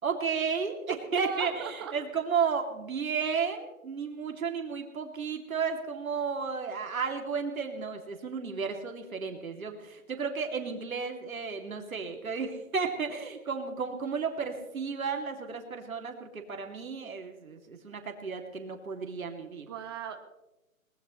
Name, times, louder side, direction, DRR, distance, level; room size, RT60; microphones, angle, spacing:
voice 1, 0.0-19.7, right 5 dB, 75° right, 3 dB, 2.8 m, -33 dB
voice 2, 0.9-1.9 19.7-20.2, right 8 dB, 15° right, 6 dB, 1.0 m, -37 dB
22.0 x 20.0 x 3.2 m, 0.97 s
hypercardioid pair, 165°, 42 cm